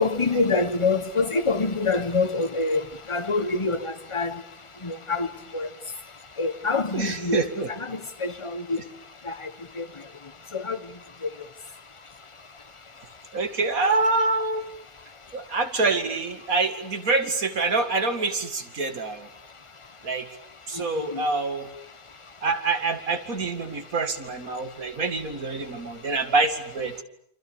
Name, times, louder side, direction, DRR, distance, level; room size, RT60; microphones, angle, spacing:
voice 1, 0.0-2.8 3.1-4.3 4.8-5.3 5.5-5.7 6.4-7.4 7.8-8.8 9.3-9.4 9.8-9.9 10.5-10.8 21.1-21.2, left 3 dB, 20° left, 1.3 m, -25 dB
voice 2, 6.9-7.7 13.3-14.7 15.3-19.3 20.0-20.3 20.7-21.7 22.4-27.0, right 3 dB, 70° right, 2.6 m, -26 dB
28.5 x 26.0 x 7.1 m
omnidirectional pair, 1.5 m